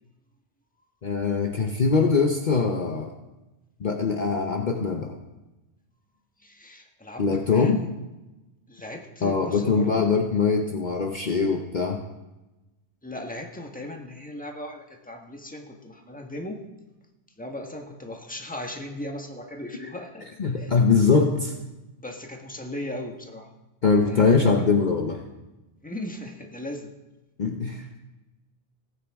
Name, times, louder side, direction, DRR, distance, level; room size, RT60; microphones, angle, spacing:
voice 1, 1.0-3.1 3.8-5.2 7.2-7.8 9.2-12.0 19.8-19.9 20.4-21.5 23.8-25.2 27.4-27.8, left 4 dB, 45° left, 2 dB, 0.9 m, -22 dB
voice 2, 6.4-7.9 8.7-10.1 13.0-16.6 17.4-20.3 20.5-20.7 22.0-23.5 24.0-24.5 25.8-26.9, left 1 dB, 10° left, 2 dB, 1.3 m, -37 dB
17.5 x 9.3 x 3.6 m, 1.1 s
omnidirectional pair, 1.2 m